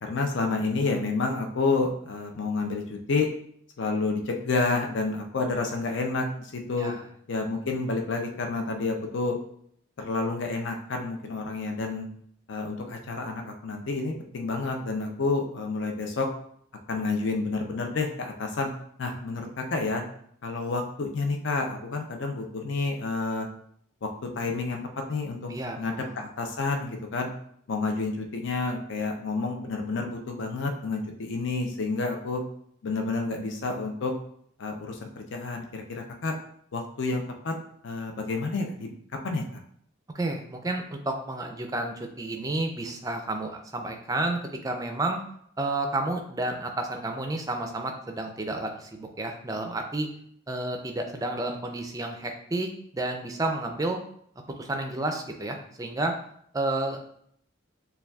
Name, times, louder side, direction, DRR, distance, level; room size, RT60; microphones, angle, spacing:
voice 1, 0.0-3.3 3.8-6.9 7.3-9.4 10.0-12.1 12.5-16.3 16.9-18.7 19.0-20.0 20.4-23.5 24.0-24.1 24.4-24.8 25.1-27.3 27.7-32.4 32.8-34.1 34.6-36.3 36.7-37.5 37.8-38.9 39.2-39.4, left 3 dB, 60° left, 2 dB, 0.5 m, -29 dB
voice 2, 25.5-26.3 40.1-44.4 44.6-45.2 45.6-50.1 50.5-54.0 54.6-56.1 56.5-57.0, right 2 dB, 15° right, 4 dB, 0.4 m, -31 dB
6.7 x 2.3 x 2.3 m, 0.67 s
head